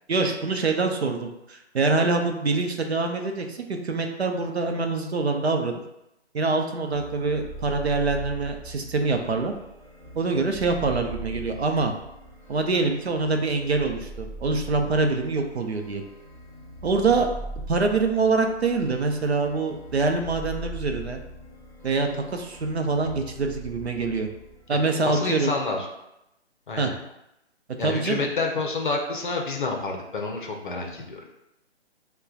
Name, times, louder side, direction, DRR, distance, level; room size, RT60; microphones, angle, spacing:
voice 1, 0.1-5.7 6.3-9.5 10.1-11.9 12.5-16.0 16.8-17.3 17.7-21.2 21.8-24.3 24.7-25.5 26.8-26.9 27.8-28.3, right 3 dB, 65° right, 4 dB, 0.6 m, -25 dB
sound 1, 6.8-24.6, right 1 dB, 10° right, 0.4 m, -41 dB
voice 2, 25.0-25.9 26.7-26.9 27.8-31.3, left 3 dB, 45° left, 2 dB, 0.6 m, -29 dB
5.3 x 2.2 x 2.4 m, 0.88 s
figure-of-eight pair, 140°, 35 cm